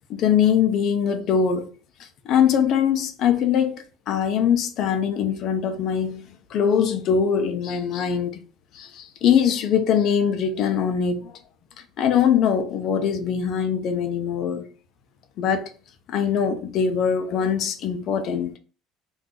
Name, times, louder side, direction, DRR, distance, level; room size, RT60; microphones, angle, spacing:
voice 1, 0.1-1.7 2.0-8.4 8.7-11.3 12.0-14.7 15.4-15.7 16.1-18.6, left 7 dB, 40° left, 0.4 m, -22 dB
2.5 x 2.3 x 3.7 m
cardioid pair, 180°, 0 cm